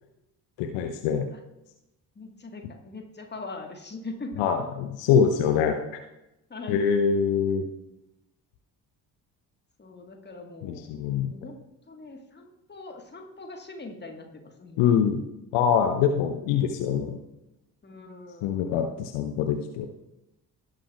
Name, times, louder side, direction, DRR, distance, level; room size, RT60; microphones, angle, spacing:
voice 1, 0.6-1.3 4.4-5.8 6.7-7.6 10.6-11.3 14.8-15.2 15.5-17.2 18.4-19.9, left 7 dB, 60° left, 6 dB, 0.8 m, -24 dB
voice 2, 2.2-4.4 6.5-6.8 9.8-10.9 11.3-11.6 11.9-14.9 17.8-18.7, left 3 dB, 20° left, 3 dB, 1.5 m, -41 dB
17.5 x 6.1 x 2.4 m, 0.92 s
figure-of-eight pair, 40°, 50 cm